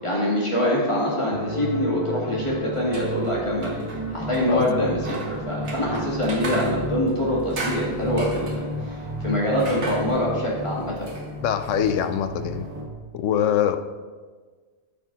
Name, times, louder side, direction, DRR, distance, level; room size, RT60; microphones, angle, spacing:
voice 1, 0.0-3.8 4.1-11.1, left 1 dB, 20° left, -5 dB, 2.2 m, -25 dB
sound 1, 1.3-12.9, equal, 10° right, 0.9 m, -32 dB
sound 2, 2.7-12.8, right 2 dB, 60° right, 1.6 m, -38 dB
voice 2, 11.4-12.7 13.1-13.8, left 9 dB, 75° left, 9 dB, 0.9 m, -23 dB
13.5 x 5.0 x 4.0 m, 1.5 s
omnidirectional pair, 1.4 m